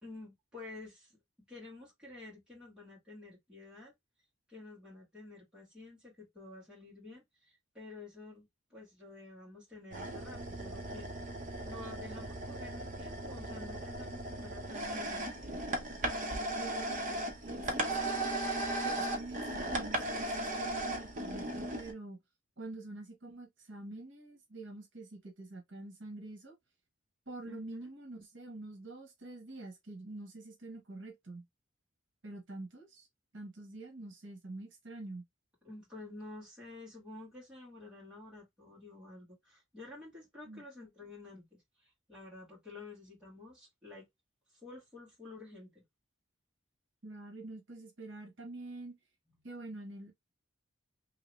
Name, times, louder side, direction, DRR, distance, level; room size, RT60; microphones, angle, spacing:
voice 1, 0.0-1.2 1.5-3.9 4.5-11.1 11.6-15.5 27.4-27.9 35.6-44.1 44.6-45.8 49.3-49.5, left 2 dB, 5° right, 1.7 m, -50 dB
sound 1, 9.9-21.9, right 1 dB, 40° right, 0.8 m, -37 dB
voice 2, 16.6-18.4 18.8-22.2 22.6-26.5 27.3-31.4 32.2-33.1 33.3-35.2 40.4-40.6 47.0-48.9 49.4-50.1, right 2 dB, 65° right, 1.1 m, -46 dB
2.9 x 2.9 x 3.0 m
head